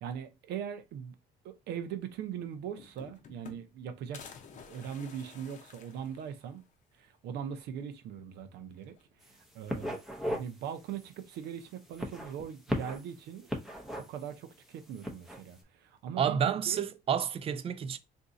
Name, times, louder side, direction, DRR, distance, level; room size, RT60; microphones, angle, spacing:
voice 1, 0.0-1.1 1.4-4.2 4.5-6.6 7.0-8.9 9.3-10.0 10.3-13.5 14.0-16.4 16.7-16.8, right 8 dB, 75° right, 0.6 m, -40 dB
sound 1, 2.2-2.3 2.5-3.8 4.1-6.7 7.2-7.3 7.5-7.6 8.8-9.2 9.6-10.3 11.4-12.0, left 6 dB, 45° left, 0.7 m, -53 dB
sound 2, 9.2-9.4 9.7-10.5 10.9-11.1 11.9-13.1 13.5-14.3 14.9-15.4, equal, ahead, 0.7 m, -36 dB
voice 2, 16.2-18.0, right 8 dB, 35° right, 0.4 m, -30 dB
2.7 x 2.3 x 3.9 m
cardioid pair, 110°, 17 cm